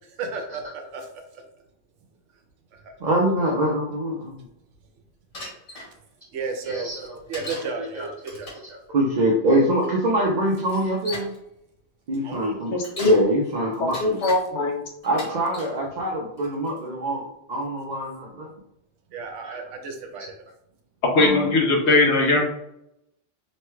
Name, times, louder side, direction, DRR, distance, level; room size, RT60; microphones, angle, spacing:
voice 1, 0.1-1.1 2.7-2.9 6.3-6.9 7.3-8.6 12.2-12.5 19.1-20.5, right 4 dB, 85° right, 4 dB, 0.9 m, -33 dB
voice 2, 3.0-4.4 6.6-7.2 7.6-8.4 8.6-11.3 12.1-14.2 15.0-17.2 17.5-18.5 19.4-19.6 21.2-21.5 21.8-22.0, right 1 dB, 55° right, -1 dB, 0.5 m, -25 dB
Bicycle, 5.3-5.9 7.3-7.7 8.2-8.7 9.8-9.9 10.7-11.4 12.7-13.2 13.7-14.4 15.0-15.8 16.4-16.8, left 1 dB, 35° left, 0.8 m, -37 dB
voice 3, 12.7-13.1 13.8-14.8 21.0-22.4, left 2 dB, 75° left, 0 dB, 0.9 m, -20 dB
3.0 x 2.2 x 3.1 m, 0.80 s
omnidirectional pair, 1.2 m